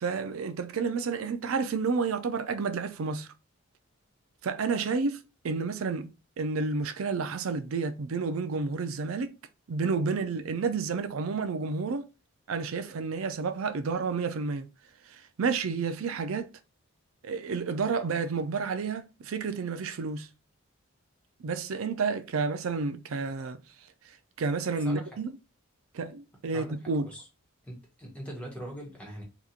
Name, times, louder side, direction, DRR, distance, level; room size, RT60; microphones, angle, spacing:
voice 1, 0.0-3.3 4.4-6.1 6.4-9.3 9.7-12.1 12.5-14.7 15.4-16.5 17.2-20.3 21.4-23.6 24.4-25.3 25.9-27.1, right 4 dB, 75° right, 0.5 m, -30 dB
voice 2, 26.5-27.3 27.6-29.2, right 1 dB, 5° left, 1.2 m, -42 dB
2.9 x 2.4 x 3.8 m
head